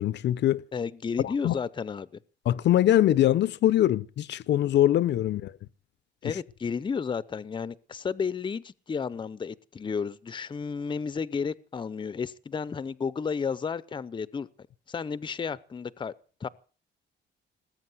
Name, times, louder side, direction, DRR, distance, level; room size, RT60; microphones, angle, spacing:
voice 1, 0.0-0.6 1.4-1.5 2.5-5.5, left 12 dB, 70° left, 0.7 m, -22 dB
voice 2, 0.7-2.1 6.2-14.5 14.9-16.1 16.4-16.5, left 5 dB, 25° left, 0.7 m, -32 dB
20.0 x 8.9 x 7.8 m
cardioid pair, 145°, 19 cm